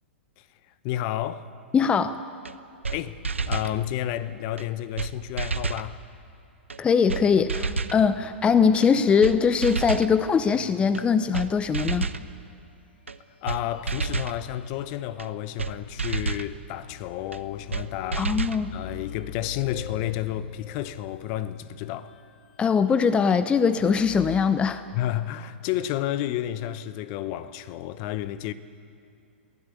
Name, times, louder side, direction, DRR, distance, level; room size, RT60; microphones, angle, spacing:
voice 1, 0.8-1.5 2.9-3.2 3.5-6.0 13.4-18.3 18.7-22.1 24.9-28.5, left 12 dB, 40° left, 0.9 m, -31 dB
voice 2, 1.7-2.2 6.8-12.1 18.2-18.7 22.6-24.8, left 6 dB, 15° left, 0.7 m, -21 dB
sound 1, 2.4-2.5 2.8-3.0 3.2-3.7 4.6-4.7 5.0-5.1 5.4-5.9 6.7-6.8 7.1-7.2 7.5-8.0 8.8-8.9 9.2-9.4 9.6-10.1 10.9-11.0 11.3-11.5 11.7-12.2 13.1-13.2 13.5-13.6 13.9-14.4 15.2-15.3 15.6-15.7 16.0-16.5 17.3-17.4 17.7-17.8 18.1-18.6, right 4 dB, 90° right, 0.9 m, -29 dB
sound 2, 9.3-11.9 12.2-12.3 13.3-24.6, left 8 dB, 55° left, 1.9 m, -45 dB
23.0 x 16.5 x 8.6 m
hypercardioid pair, 115°, 6 cm